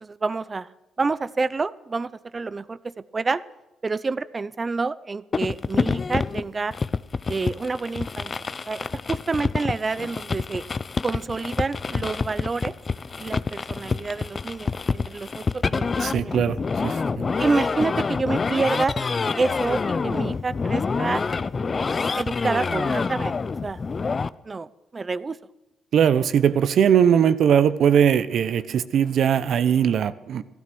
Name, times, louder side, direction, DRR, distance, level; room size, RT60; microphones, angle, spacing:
voice 1, 0.0-0.7 1.0-3.4 3.8-6.7 7.3-8.3 8.7-10.6 11.0-12.7 13.2-16.3 17.4-19.0 19.4-21.2 22.2-23.3 23.6-23.8 24.4-25.4, right 4 dB, 30° right, 16 dB, 0.7 m, -28 dB
sound 1, 5.3-24.3, left 4 dB, 35° left, 0.5 m, -27 dB
voice 2, 16.0-16.6 16.8-17.2 25.9-30.4, right 8 dB, 65° right, 14 dB, 0.9 m, -20 dB
15.0 x 13.0 x 6.2 m, 1.0 s
cardioid pair, 90°, 0 cm